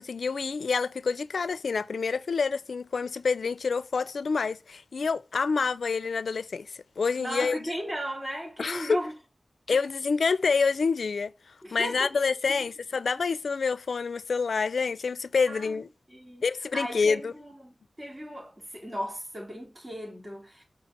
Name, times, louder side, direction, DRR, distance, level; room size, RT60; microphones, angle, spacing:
voice 1, 0.0-7.6 8.6-9.0 9.7-11.3 11.7-15.9 16.4-17.3, left 5 dB, 85° left, 0.4 m, -27 dB
voice 2, 7.2-9.1 9.7-9.8 11.6-12.1 12.5-12.7 15.5-16.4 16.7-20.6, equal, 25° right, 3.5 m, -36 dB
6.6 x 4.9 x 3.8 m
wide cardioid pair, 70°, 0 cm